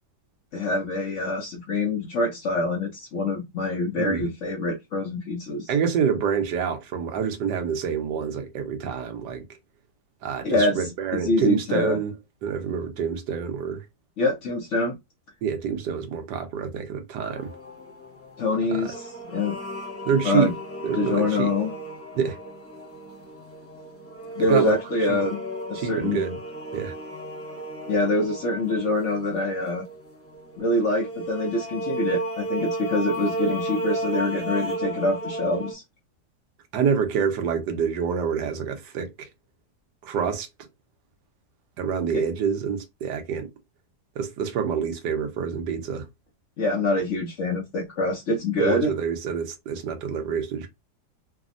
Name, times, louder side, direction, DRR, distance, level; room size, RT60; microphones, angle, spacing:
voice 1, 0.5-5.7 10.4-10.9 11.2-12.0 14.2-15.0 18.4-19.5 20.2-20.5 21.0-21.7 24.4-25.4 25.7-26.2 27.9-29.8 30.6-35.8 46.6-48.9, left 2 dB, 65° left, 0.7 m, -25 dB
voice 2, 4.0-4.3 5.7-9.4 10.2-12.1 12.4-13.9 15.4-17.5 18.7-18.9 20.0-20.5 20.8-21.5 22.1-22.4 24.5-24.7 25.1-25.2 25.7-26.3 26.7-26.9 27.6-27.7 36.7-39.3 40.0-40.5 41.8-43.5 44.2-46.1 48.6-50.7, right 7 dB, 85° right, 1.3 m, -27 dB
sound 1, 17.2-35.7, right 1 dB, 15° left, 0.6 m, -34 dB
3.4 x 2.0 x 2.4 m
omnidirectional pair, 1.8 m